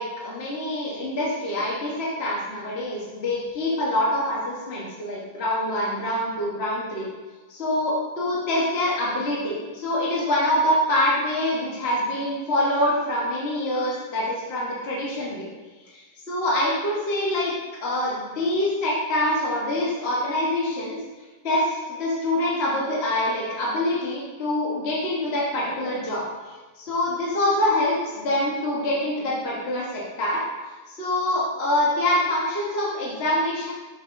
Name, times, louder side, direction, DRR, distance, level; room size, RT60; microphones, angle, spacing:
voice 1, 0.0-7.1 7.5-15.4 15.9-17.5 17.8-21.0 21.4-30.4 30.9-33.7, left 1 dB, 40° left, -5 dB, 1.0 m, -25 dB
7.1 x 6.8 x 2.5 m, 1.3 s
omnidirectional pair, 2.4 m